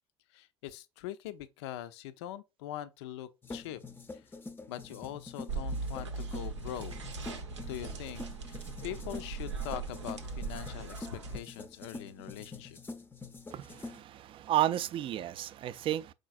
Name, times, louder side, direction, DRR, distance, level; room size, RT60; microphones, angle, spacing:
voice 1, 0.3-3.8 4.1-4.3 4.7-6.9 7.7-12.8, left 12 dB, 70° left, 0.5 m, -42 dB
sound 1, 3.4-14.0, left 3 dB, 15° left, 0.5 m, -46 dB
sound 2, 5.5-11.4, right 4 dB, 90° right, 0.6 m, -39 dB
voice 2, 13.5-16.1, right 13 dB, 35° right, 0.3 m, -32 dB
4.9 x 3.9 x 2.5 m
hypercardioid pair, 70°, 15 cm